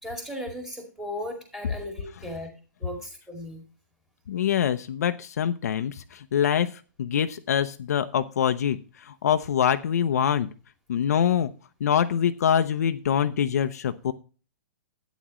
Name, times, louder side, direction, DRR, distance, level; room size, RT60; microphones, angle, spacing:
voice 1, 0.0-2.5 2.8-3.6, left 1 dB, 5° right, 2 dB, 2.2 m, -36 dB
voice 2, 4.3-10.5 10.9-11.5 11.8-14.1, left 8 dB, 60° left, 9 dB, 0.7 m, -24 dB
11.5 x 9.2 x 3.1 m, 0.35 s
hypercardioid pair, 170°, 10 cm